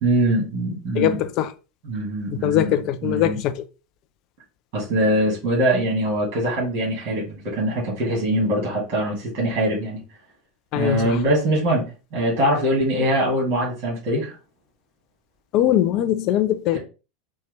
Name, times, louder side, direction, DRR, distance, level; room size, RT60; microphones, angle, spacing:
voice 1, 0.0-1.2 1.8-2.7 3.0-3.4 4.7-10.0 10.7-11.9 12.1-14.3, right 1 dB, 45° right, 1.9 m, -22 dB
voice 2, 1.0-1.5 2.4-3.6 10.7-11.2 15.5-16.8, left 12 dB, 50° left, 0.4 m, -21 dB
4.2 x 2.2 x 3.2 m
figure-of-eight pair, 80°, 0 cm